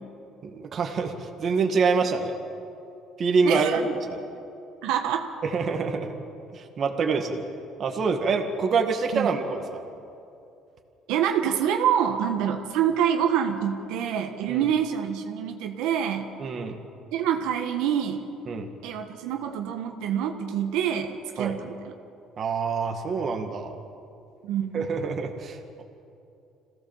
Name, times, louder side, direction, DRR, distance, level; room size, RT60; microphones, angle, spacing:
voice 1, 0.4-2.3 3.2-4.2 5.5-6.1 6.5-7.4 7.8-9.8 14.5-14.6 16.4-16.8 18.5-18.7 21.4-21.6 22.4-23.8 24.7-25.8, right 4 dB, 35° right, 4 dB, 2.0 m, -26 dB
voice 2, 3.4-3.8 4.8-5.3 9.1-9.3 11.1-16.3 17.1-18.2 18.8-21.1 21.3-21.9 24.4-24.9, right 9 dB, 85° right, 4 dB, 1.5 m, -26 dB
26.5 x 16.5 x 7.4 m, 2.6 s
cardioid pair, 150°, 0 cm